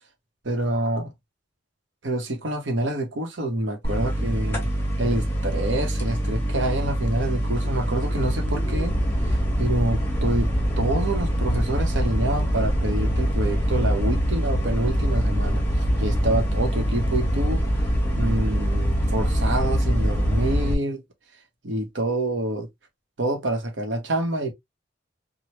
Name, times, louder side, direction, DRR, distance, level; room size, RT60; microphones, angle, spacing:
voice 1, 0.4-1.1 2.0-4.7 5.0-9.0 9.2-10.5 10.8-17.6 18.1-21.0 21.6-22.7 23.2-24.5, right 1 dB, 80° right, 0.9 m, -27 dB
sound 1, 3.8-20.7, equal, 10° left, 0.9 m, -24 dB
3.3 x 2.2 x 2.8 m
head